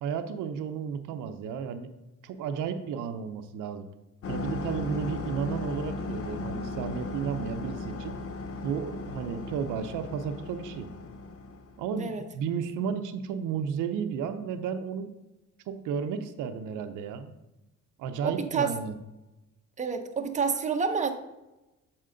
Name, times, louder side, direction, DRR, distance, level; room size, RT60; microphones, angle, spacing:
voice 1, 0.0-1.9 2.2-3.9 4.3-8.2 8.6-10.9 11.8-15.1 15.7-17.3 18.0-18.9, right 7 dB, 90° right, 9 dB, 0.5 m, -33 dB
sound 1, 4.2-11.8, left 3 dB, 50° left, 0.7 m, -36 dB
voice 2, 18.2-18.7 19.8-21.1, right 5 dB, 25° right, 6 dB, 0.7 m, -28 dB
7.4 x 4.3 x 3.8 m, 0.99 s
cardioid pair, 90°, 30 cm